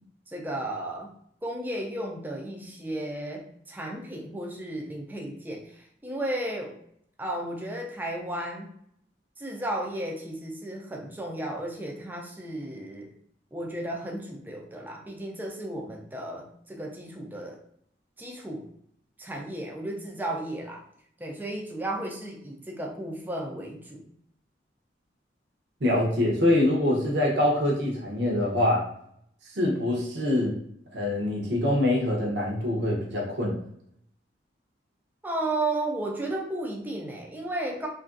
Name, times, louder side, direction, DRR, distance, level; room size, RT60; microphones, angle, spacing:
voice 1, 0.3-1.1 1.4-6.8 7.2-8.7 9.4-13.1 13.5-17.6 18.2-18.7 19.2-20.8 21.2-24.0 35.2-37.9, right 1 dB, 10° right, 0 dB, 0.3 m, -34 dB
voice 2, 25.8-28.9 29.5-30.5 30.9-33.6, left 1 dB, 65° right, -2 dB, 0.7 m, -24 dB
2.9 x 2.5 x 2.4 m, 0.70 s
head